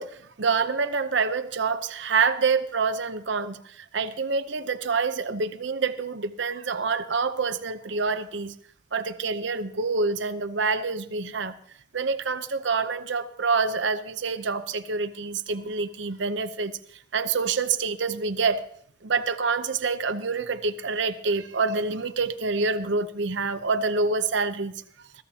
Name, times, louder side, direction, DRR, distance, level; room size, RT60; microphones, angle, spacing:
voice 1, 0.0-8.5 8.9-11.5 11.9-16.7 17.1-18.7 19.0-24.7, right 4 dB, 70° right, 11 dB, 0.8 m, -27 dB
21.0 x 14.5 x 2.9 m, 0.62 s
head